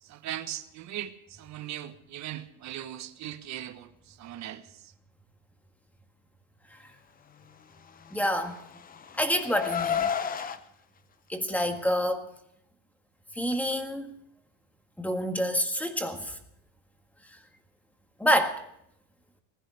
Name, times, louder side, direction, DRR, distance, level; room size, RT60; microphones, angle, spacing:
voice 1, 0.0-4.8, right 12 dB, 40° right, 9 dB, 1.4 m, -39 dB
Car, 8.1-10.6, left 7 dB, 20° left, 0.7 m, -31 dB
voice 2, 8.1-8.6 9.2-10.1 11.3-12.3 13.4-14.1 15.0-16.4 18.2-18.6, equal, 5° left, 5 dB, 1.8 m, -27 dB
19.0 x 15.5 x 4.8 m, 0.75 s
cardioid pair, 145°, 44 cm